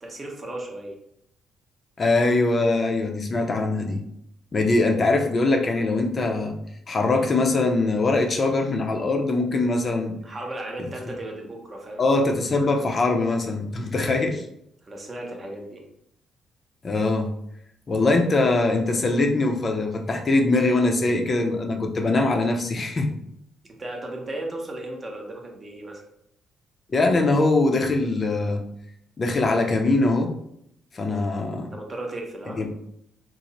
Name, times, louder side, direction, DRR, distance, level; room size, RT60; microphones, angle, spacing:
voice 1, 0.0-1.0 10.2-12.1 14.8-15.8 23.8-26.0 31.7-32.6, right 1 dB, 30° right, 1 dB, 0.8 m, -35 dB
voice 2, 2.0-4.0 4.5-6.6 6.9-10.2 12.0-14.4 16.8-17.3 17.9-23.1 26.9-28.6 29.2-30.3 30.9-31.7 32.6-32.7, left 2 dB, 40° left, 3 dB, 0.6 m, -22 dB
3.1 x 2.0 x 3.8 m, 0.75 s
cardioid pair, 90°, 0 cm